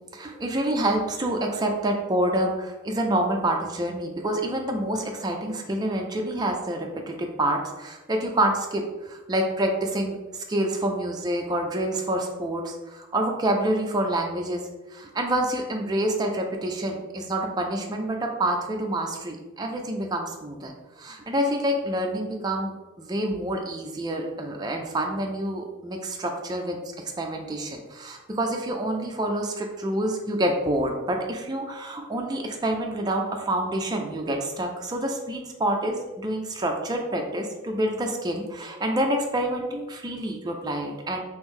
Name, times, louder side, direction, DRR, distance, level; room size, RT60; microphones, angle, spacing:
voice 1, 0.1-14.6 14.9-22.7 23.0-26.8 27.2-41.2, right 1 dB, 20° right, 2 dB, 0.4 m, -27 dB
3.0 x 2.6 x 3.6 m, 1.1 s
head